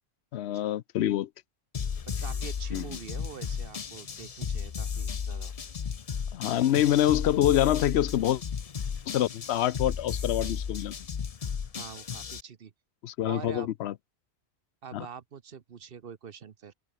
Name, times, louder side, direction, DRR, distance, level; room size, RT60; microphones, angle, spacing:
voice 1, 0.3-1.3 2.7-2.8 6.3-8.4 9.1-11.0 13.0-13.9 14.9-15.1, left 12 dB, 80° left, 0.9 m, -26 dB
sound 1, 1.7-12.4, left 6 dB, 40° left, 0.7 m, -34 dB
voice 2, 2.1-5.5 11.7-12.7 13.2-13.7 14.8-16.7, right 7 dB, 60° right, 1.1 m, -44 dB
omnidirectional pair, 1.1 m